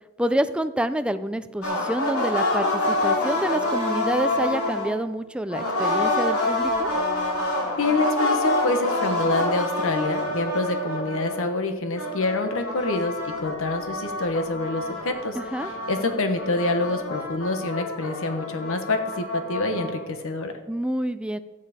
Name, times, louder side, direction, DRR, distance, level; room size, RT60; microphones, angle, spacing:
voice 1, 0.2-6.9 15.4-15.7 20.7-21.4, right 1 dB, 5° right, 11 dB, 0.5 m, -27 dB
sound 1, 1.6-5.0 5.5-11.6 11.9-20.1, left 1 dB, 85° left, 2.6 m, -27 dB
voice 2, 7.8-15.4 15.9-20.5, left 2 dB, 65° left, 7 dB, 1.2 m, -26 dB
13.0 x 9.7 x 5.0 m, 1.1 s
head